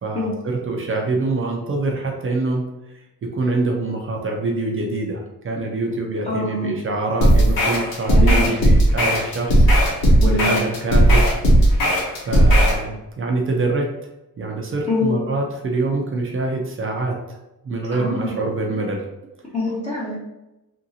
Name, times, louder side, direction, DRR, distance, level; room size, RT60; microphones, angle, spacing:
voice 1, 0.0-2.7 3.2-11.2 12.3-13.9 14.4-17.4 17.6-19.1, right 2 dB, 40° right, 0 dB, 0.4 m, -25 dB
voice 2, 6.2-6.7 8.0-8.5 10.2-10.6 14.9-15.1 17.9-18.3 19.5-20.2, left 2 dB, 20° left, -8 dB, 0.6 m, -24 dB
sound 1, 7.2-12.8, right 1 dB, 80° left, 0.9 m, -15 dB
2.9 x 2.6 x 2.7 m, 0.95 s
wide cardioid pair, 175°, 35 cm